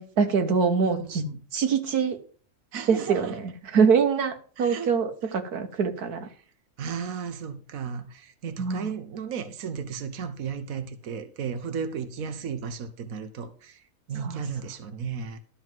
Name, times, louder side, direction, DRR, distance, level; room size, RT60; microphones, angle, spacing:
voice 1, 0.0-1.3 1.5-2.2 2.9-6.3 8.6-8.9 14.2-14.4, right 6 dB, 90° right, 1.7 m, -24 dB
voice 2, 0.8-1.4 2.7-3.4 4.6-4.9 6.8-13.8 14.1-15.4, right 6 dB, 70° right, 1.4 m, -34 dB
12.5 x 4.2 x 7.5 m
omnidirectional pair, 1.6 m